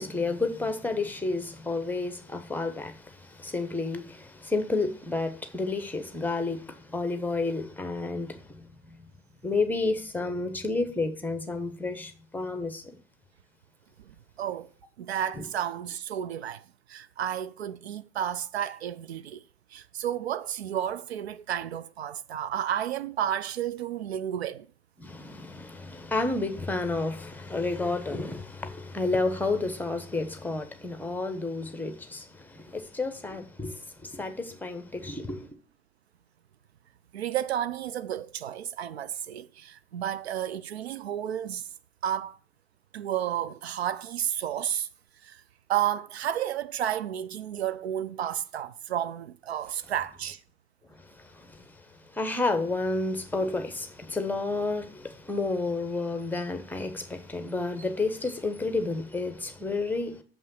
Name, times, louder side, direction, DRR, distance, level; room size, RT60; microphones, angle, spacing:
voice 1, 0.0-9.0 9.4-12.9 15.4-15.5 25.0-35.5 51.1-51.8 52.1-60.2, left 3 dB, 5° left, 1.0 m, -31 dB
voice 2, 14.4-14.7 15.0-19.4 19.7-24.7 37.1-41.7 42.0-42.4 42.9-44.9 45.2-45.4 45.7-50.4, right 10 dB, 70° right, 0.5 m, -32 dB
7.2 x 5.5 x 6.9 m
figure-of-eight pair, 85°, 33 cm